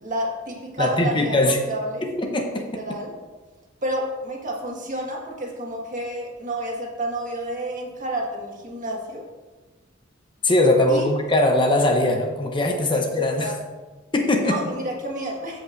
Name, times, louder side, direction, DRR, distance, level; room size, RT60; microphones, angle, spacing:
voice 1, 0.0-2.1 2.6-3.1 3.8-9.2 10.9-11.1 13.4-13.5 14.4-15.6, right 1 dB, 40° right, -1 dB, 1.6 m, -30 dB
voice 2, 0.8-1.6 2.0-2.8 10.4-13.5 14.1-14.6, left 1 dB, 25° left, 3 dB, 0.7 m, -21 dB
14.5 x 5.3 x 2.5 m, 1.2 s
head